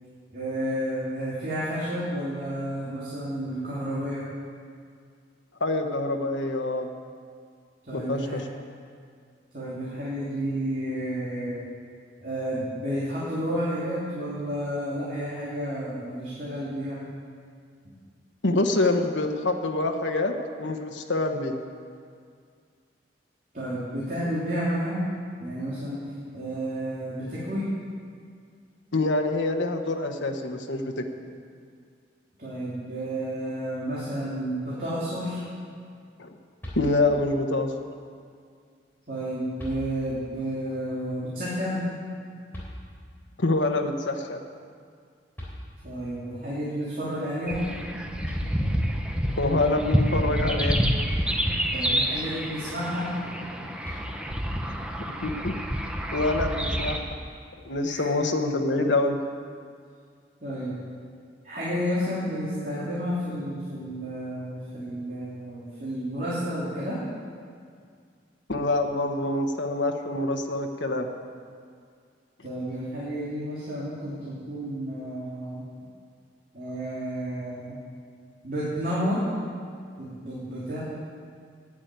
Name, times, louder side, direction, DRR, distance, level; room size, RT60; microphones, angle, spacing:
voice 1, 0.3-4.2 7.9-8.4 9.5-11.6 12.2-17.0 23.5-25.0 25.4-26.0 26.3-27.7 32.4-35.4 39.1-41.8 45.8-47.6 51.7-53.1 57.8-58.0 60.4-60.7 61.4-67.0 72.4-75.6 76.5-77.8 78.4-79.2 80.0-80.8, equal, 50° right, -9 dB, 3.2 m, -31 dB
voice 2, 5.6-6.9 7.9-8.4 18.4-21.6 28.9-31.1 36.2-36.3 36.8-37.7 43.4-44.4 48.5-48.6 49.4-50.8 54.7-54.8 55.2-55.5 56.1-57.0 57.6-59.2 68.5-71.1, left 2 dB, 90° left, 3 dB, 1.2 m, -26 dB
sound 1, 36.6-37.4 38.9-39.0 39.6-40.3 42.5-43.3 45.0-45.1 45.4-46.2 47.9-48.0 48.2-49.0 51.1-51.9 53.8-54.6, equal, 10° left, 3.7 m, -41 dB
sound 2, 47.5-57.0, equal, 5° right, 0.9 m, -28 dB
11.5 x 9.9 x 9.1 m, 2.2 s
head